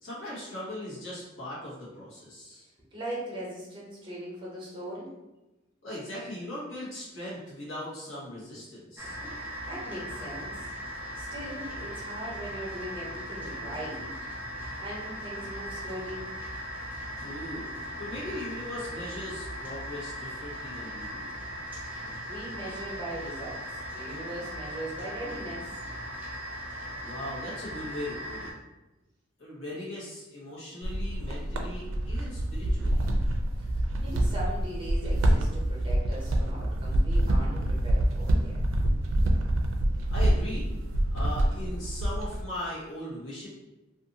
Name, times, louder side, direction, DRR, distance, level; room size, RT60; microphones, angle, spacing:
voice 1, 0.0-2.7 5.8-9.2 17.2-17.6 18.0-21.3 27.0-28.5 29.4-33.1 40.1-40.7 41.1-43.5, left 1 dB, 90° left, -8 dB, 1.1 m, -39 dB
voice 2, 2.9-5.1 9.7-10.7 11.1-14.1 14.8-16.3 22.3-25.7 33.7-38.6, right 1 dB, 25° right, -4 dB, 0.8 m, -39 dB
sound 1, 9.0-28.5, equal, 10° right, 0.4 m, -38 dB
sound 2, 30.8-42.4, right 1 dB, 80° right, 0.4 m, -26 dB
2.6 x 2.4 x 2.7 m, 1.0 s
head